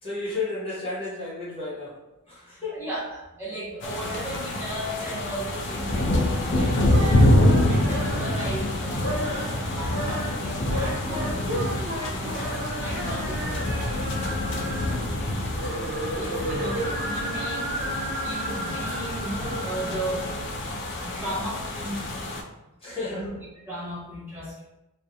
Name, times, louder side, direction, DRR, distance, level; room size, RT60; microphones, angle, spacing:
voice 1, 0.0-2.0 2.3-2.8 16.6-16.8 22.8-23.4, left 3 dB, 25° left, -9 dB, 0.8 m, -33 dB
voice 2, 2.7-7.3 7.7-14.1 14.8-15.4 16.1-17.8 18.2-20.3 21.0-22.0 23.0-23.4 23.7-24.7, right 1 dB, 10° right, -10 dB, 0.9 m, -36 dB
sound 1, 3.8-22.4, left 1 dB, 55° left, 0.4 m, -26 dB
sound 2, 6.7-8.5 8.9-9.5 9.8-15.0 15.4-20.4, right 1 dB, 50° right, 0.9 m, -33 dB
2.4 x 2.1 x 2.6 m, 0.95 s
head